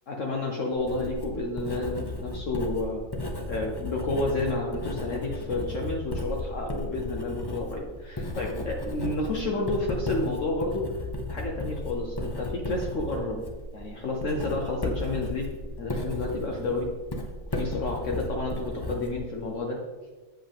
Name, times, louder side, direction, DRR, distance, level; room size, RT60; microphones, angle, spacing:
voice 1, 0.1-3.0 3.5-10.9 11.3-13.4 13.7-15.5 15.8-16.9 17.5-19.8, left 2 dB, 60° left, 0 dB, 1.2 m, -30 dB
Writing, 0.7-19.6, left 1 dB, 20° left, 0.7 m, -35 dB
7.9 x 7.8 x 3.6 m, 1.3 s
omnidirectional pair, 1.6 m